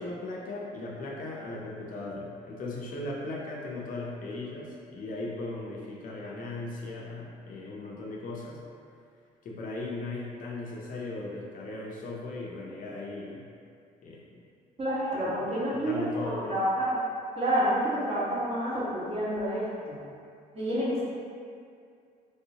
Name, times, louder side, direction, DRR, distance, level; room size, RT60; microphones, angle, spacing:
voice 1, 0.0-8.6 9.4-13.4 14.0-14.4 15.1-15.4 15.7-16.5, left 2 dB, 55° left, -3 dB, 0.6 m, -38 dB
voice 2, 14.8-17.0 17.4-20.0 20.5-21.0, right 1 dB, 35° right, -8 dB, 1.1 m, -29 dB
3.2 x 2.7 x 2.8 m, 2.3 s
cardioid pair, 110°, 17 cm